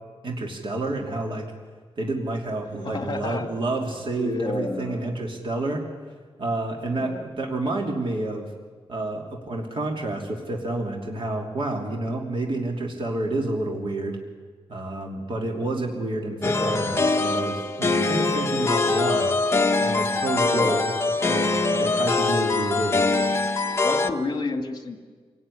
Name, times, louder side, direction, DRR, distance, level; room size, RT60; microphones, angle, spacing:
voice 1, 0.2-1.4 2.0-5.8 6.4-8.5 8.9-14.2 14.7-19.3 19.8-20.8 21.2-23.0, right 2 dB, 55° right, 1 dB, 3.1 m, -29 dB
voice 2, 2.8-3.5 4.2-5.2 6.8-7.2 20.5-20.9 23.8-25.0, left 2 dB, 40° left, 6 dB, 2.4 m, -30 dB
sound 1, 16.4-24.1, left 3 dB, 25° left, 1.2 m, -23 dB
26.5 x 18.5 x 10.0 m, 1.5 s
wide cardioid pair, 170°, 10 cm